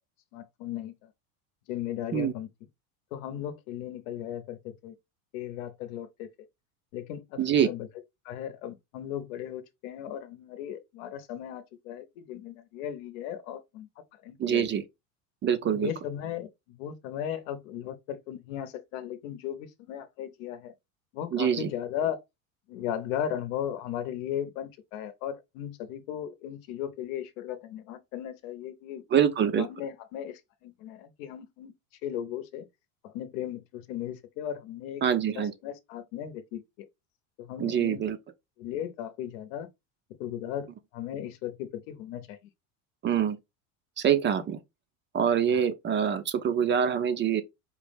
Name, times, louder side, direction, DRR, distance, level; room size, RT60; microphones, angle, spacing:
voice 1, 0.3-1.1 1.7-2.5 3.1-4.9 5.3-6.3 6.9-7.9 8.2-13.9 14.2-14.6 15.6-20.7 21.1-22.2 22.7-29.0 29.4-31.7 32.0-32.7 33.0-35.0 35.3-36.9 37.4-38.0 38.6-39.7 40.2-42.4 45.5-45.6, left 10 dB, 70° left, 0.8 m, -36 dB
voice 2, 7.4-7.7 14.4-14.8 15.4-15.9 21.3-21.7 29.1-29.7 35.0-35.5 37.6-38.2 43.0-43.4 44.0-44.6 45.1-47.4, right 8 dB, 30° right, 0.5 m, -25 dB
4.7 x 2.0 x 3.4 m
supercardioid pair, 105°, 42 cm